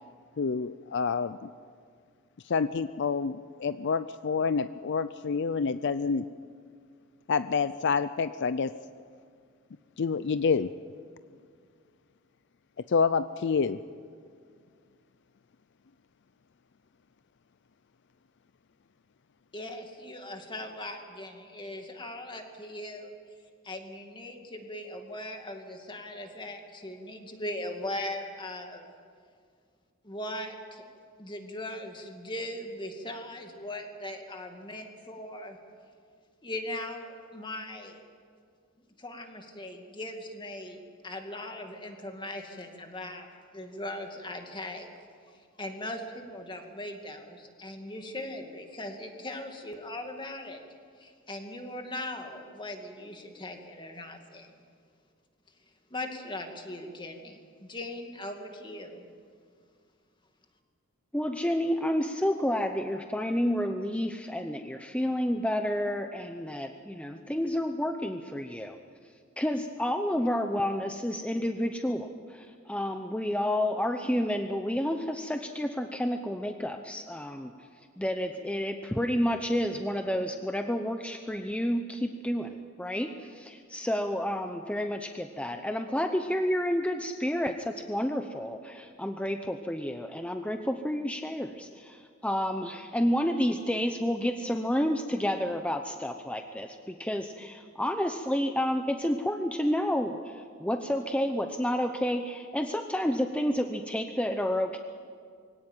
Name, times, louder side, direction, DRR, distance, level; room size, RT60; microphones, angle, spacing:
voice 1, 0.4-1.4 2.5-6.3 7.3-8.7 10.0-10.7 12.9-13.8, left 5 dB, 60° left, 14 dB, 0.5 m, -28 dB
voice 2, 19.5-23.1 23.6-28.9 30.0-30.8 31.2-35.6 36.4-38.0 39.0-43.3 43.5-44.9 45.3-50.6 51.0-54.5 55.9-59.1, left 1 dB, 25° left, 4 dB, 2.3 m, -39 dB
voice 3, 61.1-68.8 69.4-77.5 78.0-104.8, equal, 5° left, 6 dB, 0.8 m, -30 dB
23.0 x 17.5 x 9.0 m, 2.1 s
head